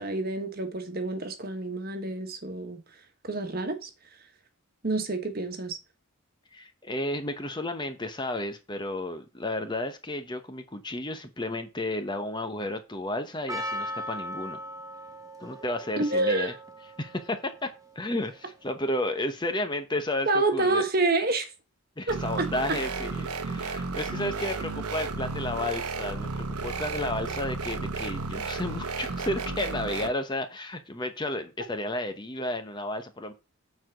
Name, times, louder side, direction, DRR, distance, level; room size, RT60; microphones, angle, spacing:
voice 1, 0.0-2.8 3.2-3.9 4.8-5.8 16.0-16.5 20.2-21.5 22.1-22.5, right 2 dB, 40° right, 1.4 m, -28 dB
voice 2, 6.5-14.6 15.4-16.5 17.0-17.5 17.9-20.8 22.0-33.3, left 1 dB, 20° left, 0.9 m, -32 dB
Percussion, 13.5-18.7, equal, 15° right, 0.8 m, -39 dB
sound 1, 22.1-30.1, right 4 dB, 90° right, 1.1 m, -33 dB
8.5 x 4.8 x 5.1 m
head